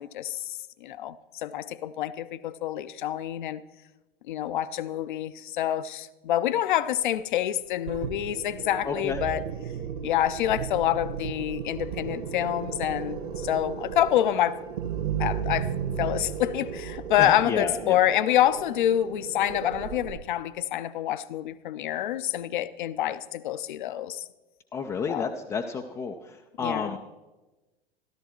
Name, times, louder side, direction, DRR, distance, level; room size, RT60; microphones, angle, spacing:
voice 1, 0.0-3.6 4.3-9.4 10.0-14.6 15.2-24.2 25.1-25.3 26.6-27.0, left 12 dB, 55° left, 0.6 m, -27 dB
sound 1, 7.9-20.2, right 8 dB, 55° right, 1.4 m, -35 dB
voice 2, 8.8-9.2 17.2-18.0 24.7-27.0, left 5 dB, 10° left, 0.3 m, -31 dB
13.5 x 13.0 x 4.4 m
figure-of-eight pair, 95°, 30 cm